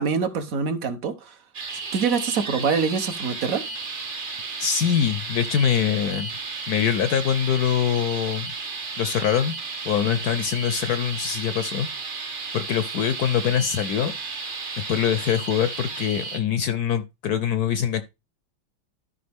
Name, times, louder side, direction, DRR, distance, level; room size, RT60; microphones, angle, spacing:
voice 1, 0.0-1.4 1.9-3.6, right 5 dB, 55° right, 1.2 m, -25 dB
sound 1, 1.5-16.4, right 4 dB, 35° right, 0.9 m, -33 dB
voice 2, 4.6-6.3 6.7-8.5 9.0-9.5 9.8-11.9 12.5-14.1 14.9-18.0, left 8 dB, 70° left, 0.9 m, -23 dB
13.0 x 4.9 x 3.5 m
omnidirectional pair, 2.1 m